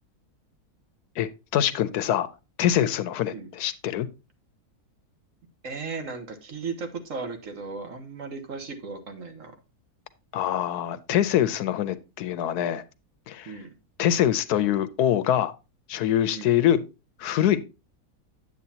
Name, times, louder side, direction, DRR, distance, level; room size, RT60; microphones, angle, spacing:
voice 1, 1.2-2.3 2.6-4.1 10.3-12.8 13.3-13.6 14.0-15.5 15.9-16.8 17.2-17.6, left 11 dB, 80° left, 1.2 m, -24 dB
voice 2, 5.6-9.5 13.4-13.7 16.3-16.5, right 4 dB, 55° right, 1.5 m, -36 dB
9.5 x 8.0 x 2.8 m
omnidirectional pair, 1.7 m